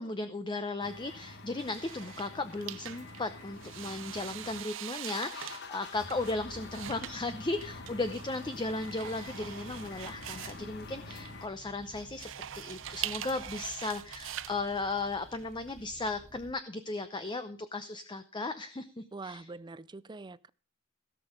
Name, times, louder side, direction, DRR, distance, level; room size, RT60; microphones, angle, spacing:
voice 1, 0.0-19.4, left 2 dB, 25° left, 0.7 m, -36 dB
sound 1, 0.8-4.6 4.9-11.5, left 3 dB, 60° left, 1.2 m, -46 dB
sound 2, 1.6-16.1, right 11 dB, 70° right, 0.6 m, -44 dB
sound 3, 6.4-16.5, equal, ahead, 1.8 m, -55 dB
voice 2, 19.1-20.5, right 3 dB, 20° right, 0.4 m, -44 dB
17.0 x 6.2 x 5.2 m
head